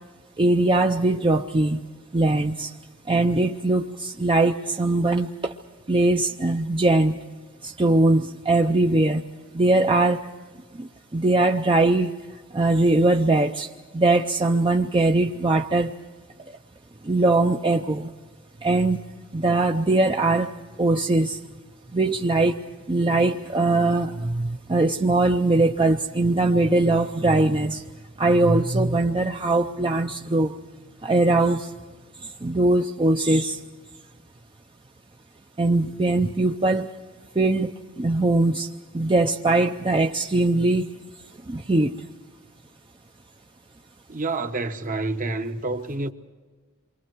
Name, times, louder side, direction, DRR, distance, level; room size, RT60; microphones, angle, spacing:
voice 1, 0.4-1.8 2.1-2.7 3.1-5.5 5.9-7.1 7.6-9.2 9.5-10.2 10.8-12.1 12.5-13.7 13.9-15.9 17.0-18.1 18.6-19.0 19.3-20.5 20.8-21.4 21.9-22.6 22.9-27.8 28.2-30.5 31.0-31.7 32.4-33.6 35.6-36.9 37.4-40.9 41.5-42.0, right 2 dB, 25° right, 0.6 m, -21 dB
voice 2, 44.1-46.1, right 2 dB, 40° right, 1.0 m, -28 dB
28.0 x 24.5 x 4.6 m
head